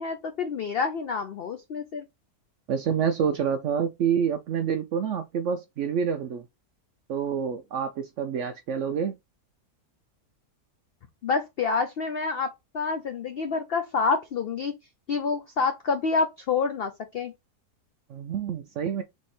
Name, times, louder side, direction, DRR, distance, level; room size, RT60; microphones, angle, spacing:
voice 1, 0.0-2.1 11.2-14.7 15.1-17.3, left 4 dB, 85° left, 0.5 m, -28 dB
voice 2, 2.7-6.4 7.1-9.2 18.1-19.0, right 7 dB, 70° right, 0.7 m, -27 dB
3.5 x 3.1 x 4.2 m
omnidirectional pair, 1.7 m